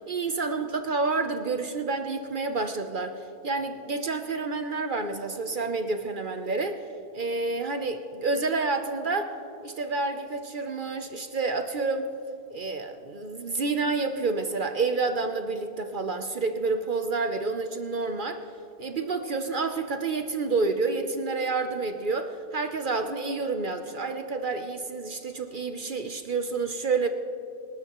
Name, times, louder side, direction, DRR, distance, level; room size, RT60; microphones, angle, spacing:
voice 1, 0.1-6.8 7.1-9.3 9.6-12.1 12.5-18.4 18.8-27.1, right 3 dB, 55° right, 7 dB, 0.6 m, -29 dB
26.5 x 12.5 x 3.0 m, 2.7 s
omnidirectional pair, 1.6 m